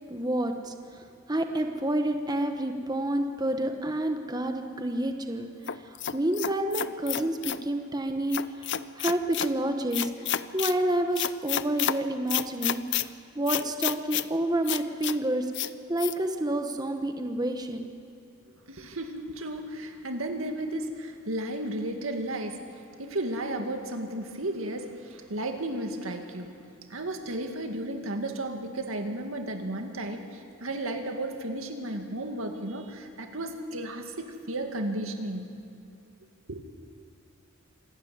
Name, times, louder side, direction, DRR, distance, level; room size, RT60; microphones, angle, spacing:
voice 1, 0.1-0.7 1.3-5.5 5.8-10.1 10.5-15.5 15.9-17.9, right 1 dB, 20° right, 5 dB, 1.1 m, -29 dB
sound 1, 5.7-7.6 8.3-9.5 9.9-10.8 11.2-12.0 12.3-13.1 13.5-14.3 14.7-15.2 15.5-15.7 16.0-16.1, left 11 dB, 60° left, 0.6 m, -30 dB
voice 2, 18.7-22.6 23.0-26.6 26.9-35.6 36.5-36.6, right 1 dB, 85° right, 5 dB, 2.2 m, -34 dB
26.5 x 12.5 x 9.5 m, 2.7 s
head